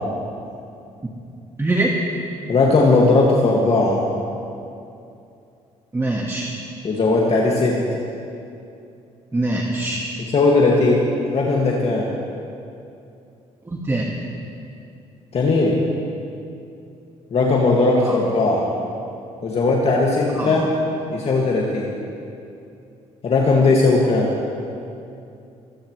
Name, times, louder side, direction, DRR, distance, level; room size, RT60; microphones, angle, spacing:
voice 1, 1.6-2.0 5.9-6.5 9.3-10.0 13.7-14.2 18.0-18.2 20.4-20.6, right 2 dB, 20° right, -1 dB, 1.7 m, -23 dB
voice 2, 2.5-4.0 6.8-7.8 10.3-11.0 11.3-12.1 15.3-15.8 17.3-18.6 19.4-20.7 21.1-21.9 23.2-24.3, left 3 dB, 50° left, -3 dB, 2.1 m, -17 dB
23.5 x 15.5 x 3.2 m, 2.6 s
supercardioid pair, 70°, 14 cm